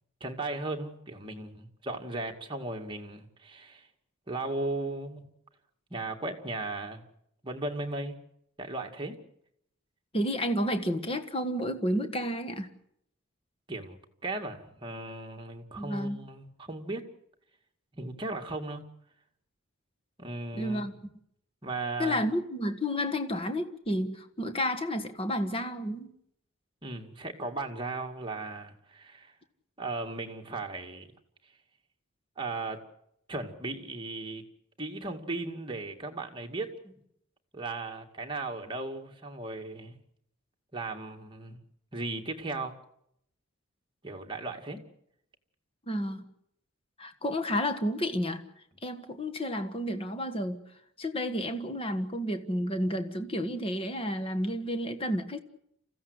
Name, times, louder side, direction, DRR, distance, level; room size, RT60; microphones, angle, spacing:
voice 1, 0.2-3.9 4.3-5.2 5.9-7.0 7.4-8.1 8.6-9.2 13.7-17.0 17.9-18.8 20.2-20.9 21.6-22.3 26.8-29.3 29.8-31.1 32.4-32.8 33.3-34.4 34.8-36.9 37.5-40.0 40.7-41.6 41.9-42.7 44.0-44.8, right 2 dB, 20° right, 2.3 m, -36 dB
voice 2, 10.1-12.7 15.8-16.2 20.5-20.9 22.0-26.1 45.9-46.3 47.0-48.4 48.8-50.6 51.0-55.4, equal, 25° left, 1.6 m, -31 dB
28.0 x 15.5 x 8.1 m
head